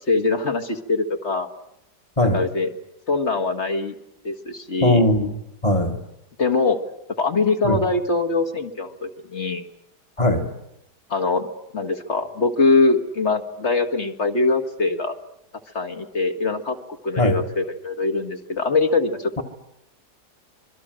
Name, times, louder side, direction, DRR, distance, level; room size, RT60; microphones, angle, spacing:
voice 1, 0.1-1.5 2.2-2.7 3.1-4.0 4.2-5.0 6.4-6.8 7.2-9.6 11.1-11.5 11.7-15.2 15.7-16.8 17.0-19.4, left 3 dB, 40° left, 5 dB, 1.9 m, -22 dB
voice 2, 4.8-5.3 5.6-6.0 7.6-7.8 10.2-10.5 17.2-17.4, left 1 dB, 20° left, 5 dB, 1.6 m, -19 dB
26.5 x 22.5 x 7.7 m, 0.83 s
omnidirectional pair, 1.8 m